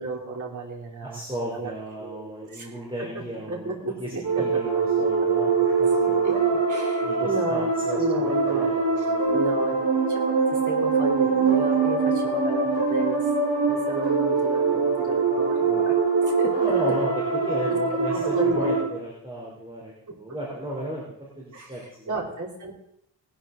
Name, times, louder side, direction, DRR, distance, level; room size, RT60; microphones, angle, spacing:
voice 1, 0.0-1.2 1.5-1.7 2.0-2.7 3.0-4.6 6.2-7.7 8.0-8.7 9.0-13.3 13.7-16.6 17.7-17.8 18.1-18.9 21.5-22.7, right 3 dB, 40° right, -2 dB, 3.3 m, -33 dB
voice 2, 1.0-6.5 7.0-9.4 16.5-22.1, right 1 dB, 10° right, -4 dB, 3.2 m, -35 dB
sound 1, 4.2-18.8, right 4 dB, 70° right, 5.0 m, -23 dB
19.0 x 12.0 x 3.8 m, 0.75 s
wide cardioid pair, 150°, 45 cm